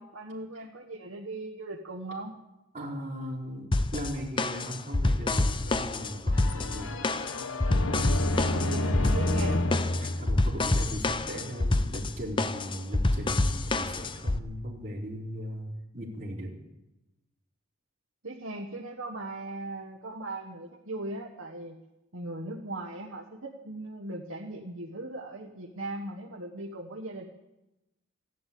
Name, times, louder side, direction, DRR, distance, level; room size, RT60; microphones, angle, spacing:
voice 1, 0.0-2.4 9.1-9.6 18.2-21.8 22.1-27.3, right 2 dB, 80° right, 0 dB, 1.5 m, -39 dB
voice 2, 2.7-6.9 8.5-9.7 10.0-15.7 15.9-16.6, equal, 35° right, -7 dB, 3.9 m, -38 dB
sound 1, 3.7-14.4, left 2 dB, 25° left, 0.5 m, -28 dB
sound 2, 6.3-11.1, left 1 dB, 80° left, 1.2 m, -30 dB
15.0 x 11.0 x 8.6 m, 0.97 s
head